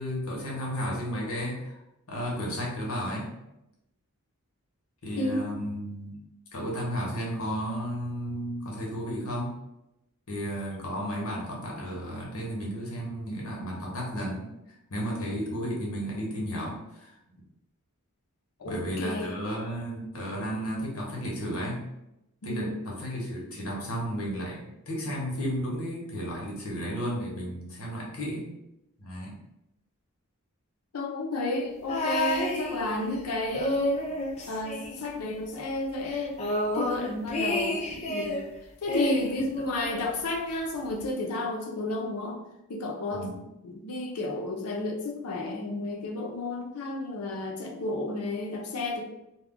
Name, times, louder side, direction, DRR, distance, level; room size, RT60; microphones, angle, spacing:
voice 1, 0.0-1.7 2.1-3.3 5.0-6.2 6.5-9.5 10.3-14.5 14.9-17.1 18.6-21.9 22.4-28.5 29.0-29.3 43.1-43.4, equal, 70° left, -2 dB, 0.9 m, -33 dB
voice 2, 18.6-19.4 22.4-22.8 30.9-34.1 34.5-36.4 36.7-38.4 38.8-42.4 42.7-43.3 43.6-49.0, left 2 dB, 90° left, 1 dB, 0.6 m, -32 dB
sound 1, 31.9-33.2 33.5-35.4 35.7-35.8 36.1-38.4 38.9-40.1 41.0-41.1, left 1 dB, 30° left, 0.4 m, -30 dB
2.3 x 2.1 x 3.6 m, 0.88 s
head